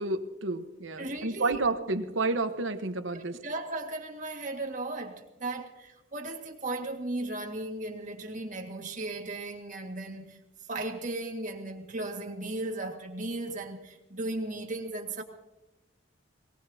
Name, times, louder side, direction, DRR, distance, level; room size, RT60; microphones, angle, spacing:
voice 1, 0.0-3.4, right 3 dB, 85° right, 1.2 m, -30 dB
voice 2, 1.0-1.6 3.1-10.4 10.7-15.2, right 2 dB, 40° right, 1.9 m, -36 dB
22.5 x 18.5 x 2.8 m
head